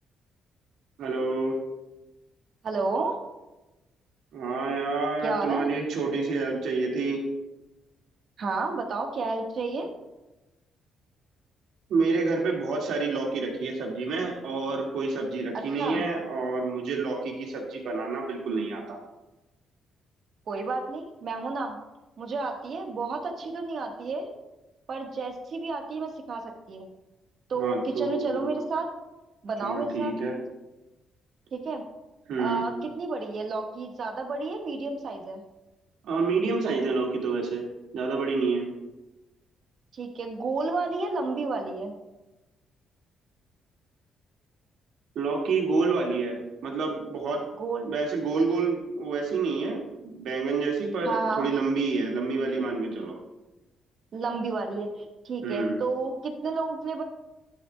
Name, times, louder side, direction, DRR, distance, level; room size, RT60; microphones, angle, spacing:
voice 1, 1.0-1.6 4.3-7.2 11.9-19.0 27.6-28.5 29.6-30.4 32.3-32.6 36.0-37.7 37.9-38.6 45.2-47.5 47.8-53.2 55.4-55.8, right 4 dB, 80° right, 0 dB, 1.9 m, -28 dB
voice 2, 2.6-3.2 5.2-5.7 8.4-9.9 15.8-16.0 20.5-21.8 22.2-24.3 24.9-26.9 27.5-28.9 29.4-30.1 31.5-31.8 32.4-35.4 39.9-42.0 47.6-47.9 51.0-51.5 54.1-57.0, right 3 dB, 55° right, 3 dB, 1.3 m, -31 dB
11.0 x 9.0 x 2.2 m, 1.0 s
cardioid pair, 90°, 0 cm